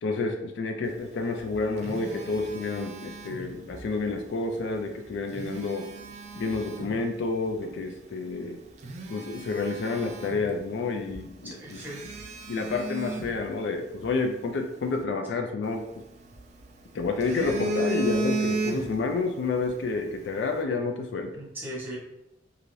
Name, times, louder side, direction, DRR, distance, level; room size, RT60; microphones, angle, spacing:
voice 1, 0.0-5.8 6.3-8.6 9.1-11.8 12.5-15.9 16.9-21.3, left 3 dB, 80° left, 4 dB, 0.3 m, -29 dB
Telephone, 1.3-3.9 5.1-7.0 7.6-7.8 8.3-8.4 8.8-10.8 11.1-11.2 11.7-14.1 15.7-16.6 17.0-19.2 19.5-19.7, right 2 dB, 40° right, 0.4 m, -34 dB
voice 2, 11.4-12.1 21.3-22.0, right 1 dB, 10° right, -6 dB, 1.0 m, -38 dB
2.6 x 2.5 x 3.1 m, 0.85 s
head